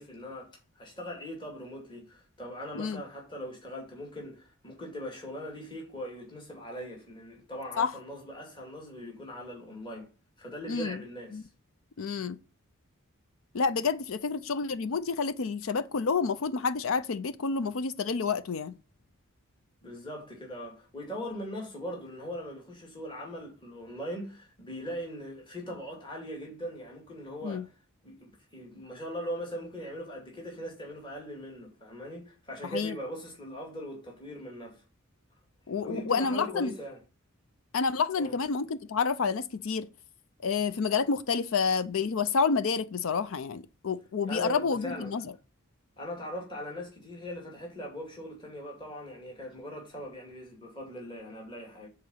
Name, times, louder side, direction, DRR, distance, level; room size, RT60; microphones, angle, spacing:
voice 1, 0.0-10.1 10.4-11.5 19.8-27.7 28.0-34.8 35.8-37.0 38.2-38.4 44.2-45.2 46.0-51.9, equal, 20° left, 2.3 m, -40 dB
voice 2, 10.7-11.0 11.3-11.4 12.0-12.4 13.5-18.7 27.4-27.6 32.7-32.9 35.7-36.7 37.7-39.9 40.4-45.2, left 5 dB, 65° left, 0.5 m, -29 dB
9.3 x 3.9 x 7.1 m
head